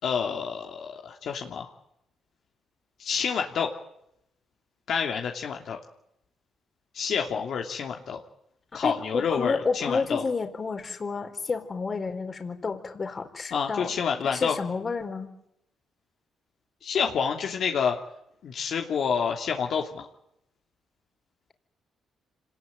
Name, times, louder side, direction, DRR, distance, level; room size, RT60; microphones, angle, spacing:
voice 1, 0.0-1.7 3.0-3.7 4.9-5.8 6.9-8.2 8.7-10.2 13.5-14.6 16.8-18.0 18.4-20.1, left 6 dB, 65° left, 2 dB, 2.8 m, -28 dB
voice 2, 8.8-13.9 14.3-15.3, left 4 dB, 35° left, 7 dB, 4.2 m, -30 dB
26.5 x 19.5 x 9.3 m, 0.79 s
cardioid pair, 90°, 0 cm